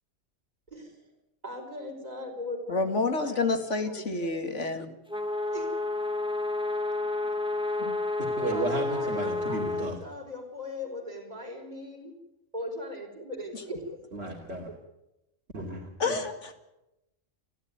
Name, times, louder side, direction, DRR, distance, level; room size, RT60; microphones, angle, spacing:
voice 1, 0.7-1.0 1.4-4.9 5.5-5.7 8.5-12.1 12.5-13.8, left 1 dB, 30° right, 3 dB, 4.8 m, -39 dB
voice 2, 2.7-5.0 7.8-7.9 9.5-9.6 13.5-13.6 16.0-16.5, left 3 dB, 60° left, 7 dB, 2.6 m, -29 dB
sound 1, 5.1-9.9, left 2 dB, 5° right, 2.5 m, -30 dB
voice 3, 8.2-10.0 14.1-14.7 15.5-16.2, right 2 dB, 50° right, 0 dB, 3.0 m, -34 dB
30.0 x 12.0 x 9.3 m, 0.91 s
omnidirectional pair, 1.4 m